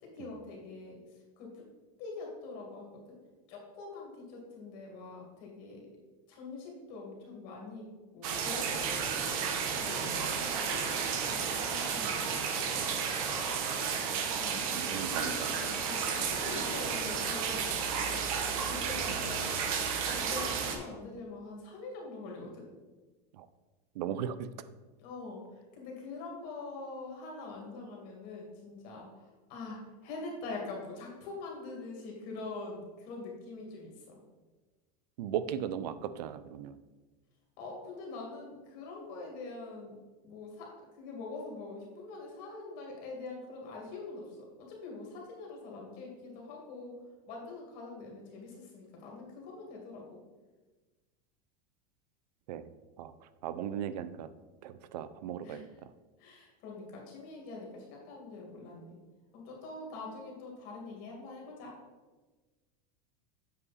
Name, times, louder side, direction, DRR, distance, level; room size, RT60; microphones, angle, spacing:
voice 1, 0.0-1.7 2.0-3.2 3.5-5.9 6.3-10.3 10.6-12.8 14.3-19.5 20.1-22.7 25.0-34.2 37.6-50.2 55.4-55.7 56.2-59.0 59.3-61.8, left 3 dB, 45° left, -1 dB, 2.2 m, -44 dB
sound 1, 8.2-20.8, right 6 dB, 60° right, 1.1 m, -32 dB
voice 2, 14.7-15.5 23.3-23.5 23.9-24.5 35.2-36.8 52.5-52.7 53.0-54.3 54.6-55.7, right 9 dB, 80° right, 14 dB, 0.6 m, -37 dB
8.1 x 4.9 x 4.1 m, 1.2 s
supercardioid pair, 165°, 21 cm